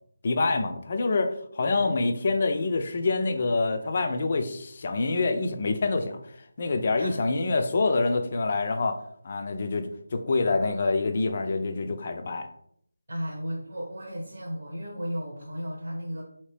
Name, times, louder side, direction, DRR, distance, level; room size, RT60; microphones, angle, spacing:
voice 1, 0.2-6.2 6.6-9.0 9.2-12.5, left 3 dB, 40° left, 6 dB, 0.4 m, -26 dB
voice 2, 1.6-1.9 6.9-7.2 7.5-7.6 13.1-16.2, equal, 70° right, -2 dB, 1.0 m, -35 dB
2.8 x 2.7 x 3.3 m, 0.68 s
figure-of-eight pair, 165°, 0 cm